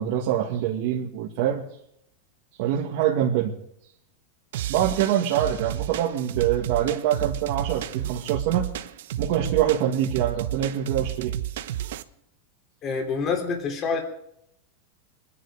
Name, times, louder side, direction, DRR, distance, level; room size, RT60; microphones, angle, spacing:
voice 1, 0.0-1.6 2.6-3.5 4.7-8.7 9.2-11.4, right 10 dB, 55° right, -2 dB, 2.0 m, -24 dB
sound 1, 4.5-12.0, right 12 dB, 75° right, 1.0 m, -32 dB
voice 2, 12.8-14.0, left 5 dB, 25° left, 3 dB, 3.1 m, -26 dB
24.5 x 10.5 x 5.0 m, 0.75 s
supercardioid pair, 160°, 0 cm